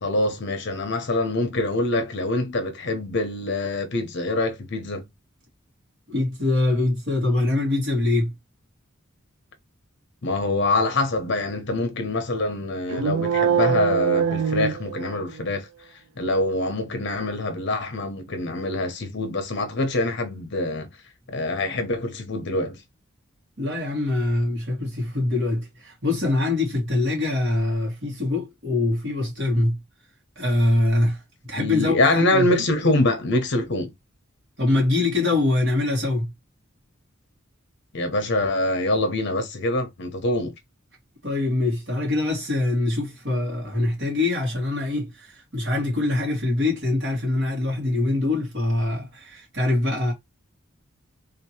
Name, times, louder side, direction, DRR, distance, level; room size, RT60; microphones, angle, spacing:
voice 1, 0.0-5.0 10.2-15.7 16.2-20.9 21.3-22.8 31.5-33.9 37.9-40.5, left 2 dB, 55° left, 0.9 m, -25 dB
voice 2, 6.1-8.3 23.6-29.8 30.4-31.2 31.5-32.5 34.6-36.3 41.2-50.1, left 2 dB, 60° right, 2.2 m, -23 dB
sound 1, 12.9-15.5, right 7 dB, 85° right, 0.3 m, -23 dB
3.6 x 2.9 x 2.9 m
head